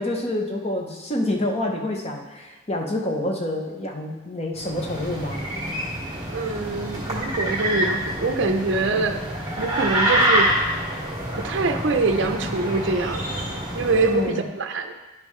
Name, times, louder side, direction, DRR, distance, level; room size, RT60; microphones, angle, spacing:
voice 1, 0.0-5.4 14.0-14.4, left 1 dB, 30° left, 2 dB, 0.7 m, -27 dB
sound 1, 4.6-14.3, right 1 dB, 20° right, 1.5 m, -26 dB
voice 2, 6.3-9.2 9.6-10.5 11.4-13.2 13.7-14.9, right 3 dB, 55° right, 6 dB, 0.5 m, -24 dB
10.5 x 5.3 x 3.2 m, 1.2 s
head